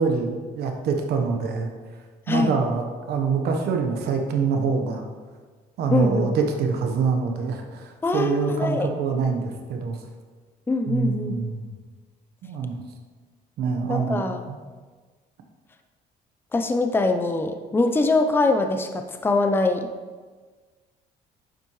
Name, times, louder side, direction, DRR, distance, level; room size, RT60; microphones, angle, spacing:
voice 1, 0.0-1.7 2.3-5.1 5.8-10.0 10.9-11.7 12.4-12.8 13.6-14.6, right 5 dB, 70° right, 3 dB, 1.1 m, -25 dB
voice 2, 5.9-6.3 8.0-8.9 10.7-11.3 13.9-14.4 16.5-19.9, left 3 dB, 15° left, 6 dB, 0.6 m, -23 dB
9.1 x 7.2 x 3.2 m, 1.4 s
cardioid pair, 110°, 17 cm